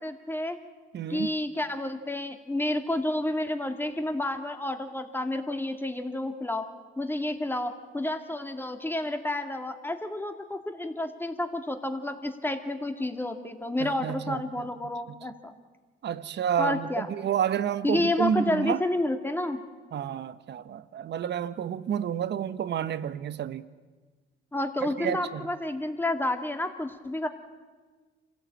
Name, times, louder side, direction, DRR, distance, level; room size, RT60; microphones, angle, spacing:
voice 1, 0.0-0.6 1.1-6.6 7.0-15.5 16.6-17.1 17.8-19.6 24.5-27.3, left 1 dB, 10° left, 2.3 m, -30 dB
voice 2, 0.9-1.3 13.8-14.7 15.1-15.2 16.0-18.8 19.9-23.7 24.8-25.5, right 9 dB, 60° right, 1.0 m, -30 dB
26.5 x 16.0 x 8.8 m
cardioid pair, 90°, 20 cm